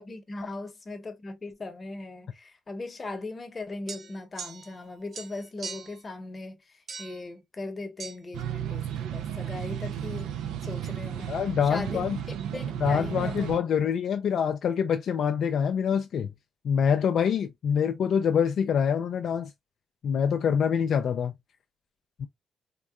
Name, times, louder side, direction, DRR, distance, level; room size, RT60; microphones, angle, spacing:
voice 1, 0.0-11.3 11.7-12.0 12.5-13.5, left 2 dB, 30° left, 0.8 m, -39 dB
sound 1, 3.9-4.9 5.1-6.0 6.9-7.3 8.0-8.2, right 5 dB, 50° right, 0.7 m, -41 dB
sound 2, 8.3-13.6, right 9 dB, 85° right, 0.4 m, -33 dB
voice 2, 11.3-12.2 12.8-16.3 16.6-19.5 20.0-21.3 22.2-22.3, left 7 dB, 65° left, 0.3 m, -25 dB
3.6 x 2.2 x 2.3 m
cardioid pair, 90°, 0 cm